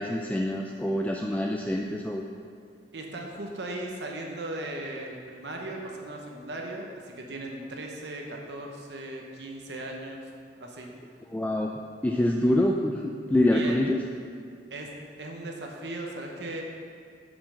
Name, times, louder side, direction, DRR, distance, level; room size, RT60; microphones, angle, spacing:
voice 1, 0.0-2.3 11.3-11.7 12.0-14.0, left 1 dB, 10° left, 0 dB, 0.3 m, -25 dB
voice 2, 2.9-10.2 10.6-10.9 13.5-13.8 14.7-14.9 15.2-16.6, right 2 dB, 70° right, 1 dB, 0.9 m, -37 dB
6.9 x 5.2 x 6.3 m, 2.2 s
head